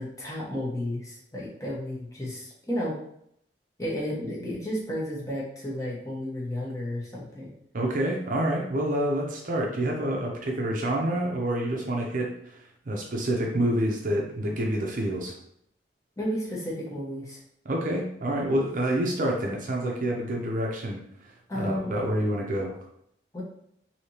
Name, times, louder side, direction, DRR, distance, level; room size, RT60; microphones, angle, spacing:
voice 1, 0.0-3.0 3.8-7.5 16.2-17.4 21.5-22.0 23.3-23.4, equal, 20° left, -5 dB, 0.9 m, -32 dB
voice 2, 7.7-12.6 12.9-15.3 17.6-21.0 21.5-22.7, right 1 dB, 45° right, 0 dB, 0.6 m, -27 dB
3.3 x 2.8 x 2.8 m, 0.72 s
head